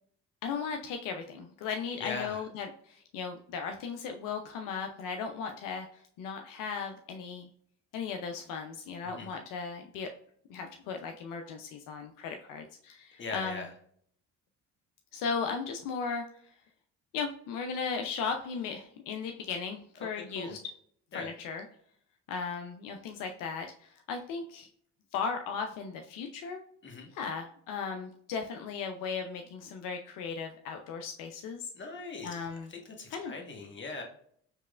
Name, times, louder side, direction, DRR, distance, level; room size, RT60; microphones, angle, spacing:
voice 1, 0.4-7.5 7.9-10.1 10.5-13.6 15.1-16.2 17.1-20.6 21.1-21.6 22.3-24.7 25.1-26.6 27.1-31.7 32.2-32.7 33.1-33.3, left 5 dB, 70° left, 5 dB, 0.6 m, -36 dB
voice 2, 2.0-2.4 9.0-9.3 13.2-13.7 20.2-20.5 21.1-21.3 26.8-27.1 31.7-34.0, left 3 dB, 35° left, 2 dB, 1.3 m, -40 dB
4.6 x 3.1 x 2.4 m, 0.62 s
supercardioid pair, 65°, 33 cm